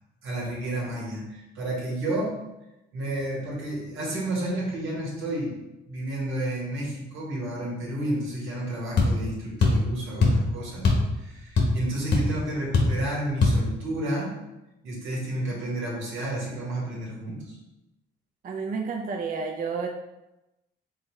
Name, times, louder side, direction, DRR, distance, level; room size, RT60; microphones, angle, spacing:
voice 1, 0.2-2.4 2.9-5.6 5.9-10.9 11.2-14.3 14.8-17.6, right 1 dB, 85° right, -4 dB, 1.6 m, -31 dB
sound 1, 9.0-9.2 9.6-9.9 10.2-10.4 10.8-11.1 11.3-11.9 12.1-12.3 12.7-13.0 13.4-13.6, left 3 dB, 60° left, 1.1 m, -20 dB
voice 2, 18.4-19.9, right 5 dB, 45° right, 2 dB, 0.5 m, -30 dB
4.6 x 3.5 x 3.1 m, 0.95 s
cardioid pair, 90°, 20 cm